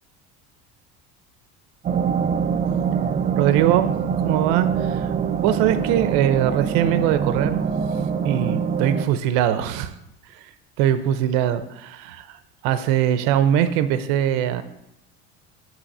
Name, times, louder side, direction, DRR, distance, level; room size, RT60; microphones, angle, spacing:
sound 1, 1.8-9.0, right 7 dB, 25° right, 0.4 m, -24 dB
voice 1, 3.4-3.9 4.2-5.1 5.4-7.6 8.2-9.9 10.3-10.5 10.8-14.6, right 10 dB, 75° right, 11 dB, 0.8 m, -21 dB
9.0 x 5.4 x 5.4 m, 0.83 s
cardioid pair, 130°, 34 cm